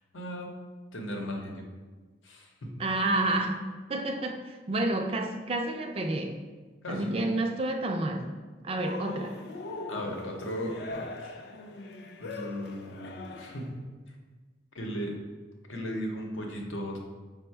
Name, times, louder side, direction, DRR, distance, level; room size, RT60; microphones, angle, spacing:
voice 1, 0.1-0.5 0.9-1.6 2.2-2.5 6.8-7.2 9.9-11.4 12.2-13.7 14.7-15.2 15.7-17.0, equal, 85° left, 1 dB, 0.8 m, -36 dB
voice 2, 2.8-6.4 6.9-8.3 8.6-9.4, right 2 dB, 30° right, 4 dB, 0.3 m, -30 dB
Cheering, 8.8-13.7, left 3 dB, 55° left, 0.4 m, -41 dB
5.3 x 2.1 x 4.4 m, 1.4 s
head